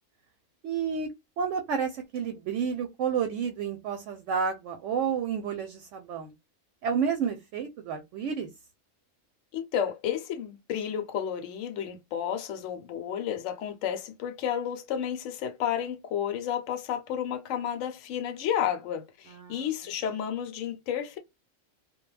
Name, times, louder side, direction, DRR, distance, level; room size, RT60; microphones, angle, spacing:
voice 1, 0.6-1.1 1.4-6.3 6.8-8.5 19.3-19.7, right 6 dB, 70° right, 0.9 m, -30 dB
voice 2, 9.5-21.2, left 9 dB, 75° left, 0.9 m, -31 dB
2.3 x 2.1 x 3.1 m
omnidirectional pair, 1.4 m